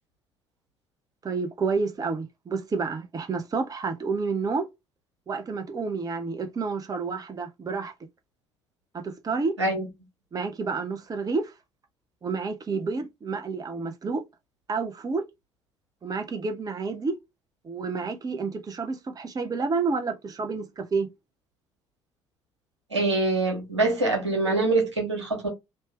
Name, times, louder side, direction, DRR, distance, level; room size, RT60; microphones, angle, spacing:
voice 1, 1.2-4.7 5.3-7.9 8.9-9.5 10.3-11.5 12.2-14.2 14.7-15.2 16.0-17.2 17.6-21.1, right 4 dB, 25° right, 0.8 m, -29 dB
voice 2, 22.9-25.5, right 2 dB, 85° right, 1.3 m, -24 dB
3.2 x 2.8 x 3.1 m
figure-of-eight pair, 50°, 15 cm